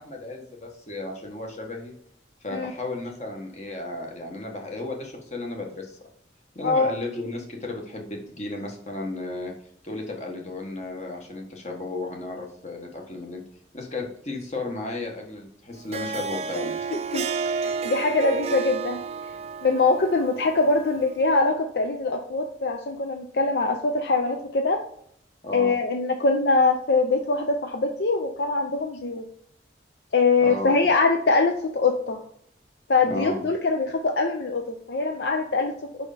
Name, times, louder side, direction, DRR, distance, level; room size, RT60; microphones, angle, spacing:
voice 1, 0.0-1.9 2.4-6.0 6.5-9.5 9.8-13.4 13.7-16.9 25.4-25.7 30.4-30.7 33.1-33.4, left 2 dB, 40° left, 1 dB, 1.4 m, -34 dB
Harp, 15.7-21.2, right 5 dB, 35° right, 0.5 m, -31 dB
voice 2, 16.9-19.0 19.6-24.8 25.5-29.2 30.1-32.2 32.9-34.6 34.9-35.7, left 3 dB, 65° left, 4 dB, 0.6 m, -23 dB
5.5 x 4.9 x 4.9 m, 0.69 s
head